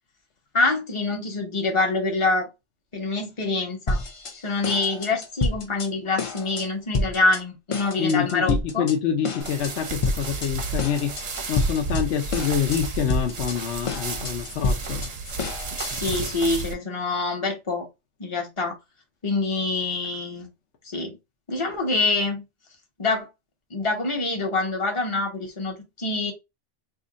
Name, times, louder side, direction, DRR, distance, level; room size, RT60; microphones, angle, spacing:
voice 1, 0.5-2.5 2.9-4.0 4.4-8.9 15.9-17.9 18.2-18.8 19.2-20.5 20.9-21.2 21.5-22.4 23.0-23.3 23.7-26.3, left 3 dB, 25° left, 0.9 m, -25 dB
sound 1, 3.9-4.4 4.6-5.9 6.2-6.7 6.9-7.4 7.7-9.0 9.2-9.7 10.0-10.5 10.8-12.0 12.3-12.8 13.1-16.1, left 3 dB, 50° left, 0.4 m, -28 dB
voice 2, 8.0-11.1 11.5-15.0, left 8 dB, 70° left, 1.0 m, -26 dB
sound 2, 9.4-16.7, right 3 dB, 40° right, 0.6 m, -32 dB
2.7 x 2.5 x 3.7 m
omnidirectional pair, 1.2 m